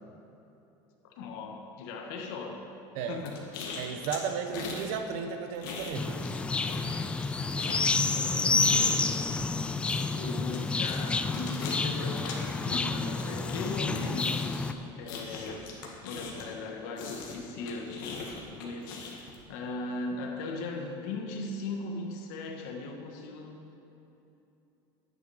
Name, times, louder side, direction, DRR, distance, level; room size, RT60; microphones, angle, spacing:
voice 1, 1.2-2.6 3.1-3.4 7.6-8.7 10.1-15.6 16.0-18.0 18.5-23.6, left 3 dB, 70° left, 2 dB, 1.5 m, -38 dB
sound 1, 3.2-4.9 5.2-6.4 6.6-16.6 17.0-19.3, left 5 dB, 85° left, 1.9 m, -40 dB
voice 2, 3.8-6.2, right 6 dB, 65° right, 7 dB, 0.9 m, -34 dB
sound 2, 5.9-14.7, left 4 dB, 10° left, 0.3 m, -29 dB
11.0 x 9.5 x 4.8 m, 3.0 s
cardioid pair, 160°, 11 cm